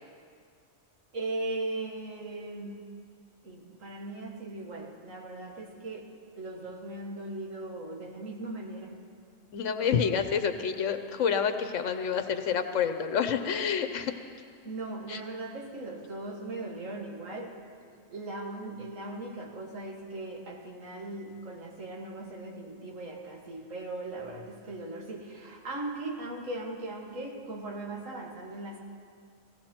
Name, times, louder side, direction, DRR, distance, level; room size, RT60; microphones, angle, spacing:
voice 1, 1.1-2.8 3.4-6.1 6.4-8.9 14.6-17.5 17.9-28.8, right 2 dB, 85° right, 1 dB, 2.0 m, -38 dB
voice 2, 9.5-14.1 15.1-15.2, left 7 dB, 75° left, 9 dB, 1.2 m, -28 dB
17.5 x 16.5 x 4.4 m, 2.2 s
omnidirectional pair, 1.3 m